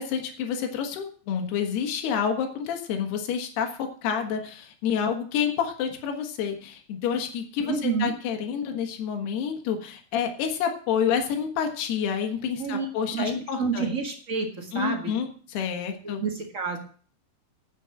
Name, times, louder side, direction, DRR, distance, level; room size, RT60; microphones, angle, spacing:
voice 1, 0.0-13.9 14.7-16.2, left 7 dB, 80° left, 4 dB, 3.6 m, -28 dB
voice 2, 7.6-8.1 12.6-13.3 13.6-15.1 16.0-16.8, right 5 dB, 50° right, 1 dB, 0.9 m, -29 dB
9.5 x 7.5 x 8.7 m, 0.43 s
omnidirectional pair, 4.6 m